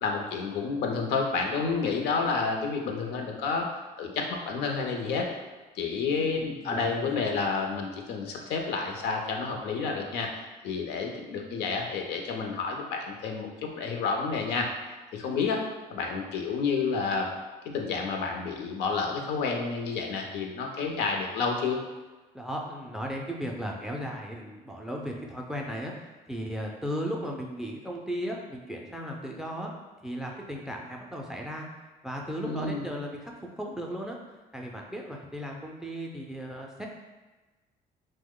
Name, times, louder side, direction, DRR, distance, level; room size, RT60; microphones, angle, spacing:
voice 1, 0.0-3.7 4.0-5.3 5.8-10.3 10.6-14.7 15.1-15.6 15.9-17.3 17.7-21.8 32.4-32.9, left 4 dB, 80° left, 2 dB, 0.6 m, -30 dB
voice 2, 6.1-7.2 22.3-29.7 30.0-31.7 32.0-34.2 34.5-36.9, equal, 5° right, 0 dB, 0.4 m, -36 dB
2.9 x 2.1 x 3.7 m, 1.2 s
cardioid pair, 110°, 17 cm